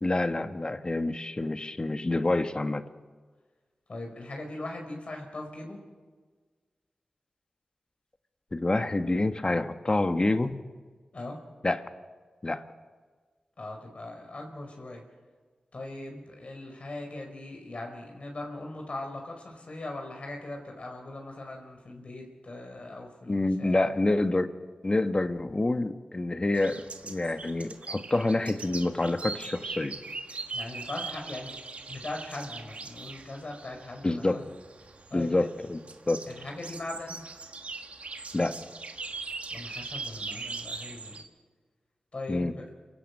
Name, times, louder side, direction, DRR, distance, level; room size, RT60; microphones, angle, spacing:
voice 1, 0.0-2.8 8.5-10.6 11.6-11.9 12.4-12.6 23.3-24.5 24.8-30.0 34.0-34.4 35.1-35.8 36.1-36.2 38.3-38.6 42.3-42.5, left 2 dB, 35° left, 9 dB, 1.4 m, -27 dB
voice 2, 3.9-5.8 11.1-11.4 13.6-15.0 15.7-23.9 30.5-34.5 35.1-35.5 36.3-37.2 39.5-41.2 42.1-42.6, left 2 dB, 55° left, 2 dB, 5.0 m, -40 dB
sound 1, 26.6-41.2, right 3 dB, 60° right, 1.7 m, -41 dB
27.0 x 16.0 x 6.7 m, 1.4 s
cardioid pair, 45°, 3 cm